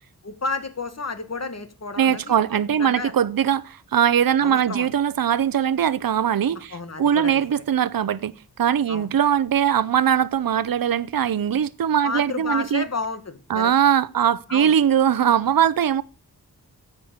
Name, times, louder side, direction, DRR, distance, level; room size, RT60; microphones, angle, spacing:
voice 1, 0.2-3.1 4.4-4.9 6.7-7.6 8.9-9.1 12.0-13.7 14.5-14.7, left 3 dB, 45° left, 1.7 m, -31 dB
voice 2, 2.0-12.8 13.5-16.0, right 9 dB, 65° right, 0.7 m, -21 dB
10.5 x 8.4 x 7.2 m
wide cardioid pair, 100°, 37 cm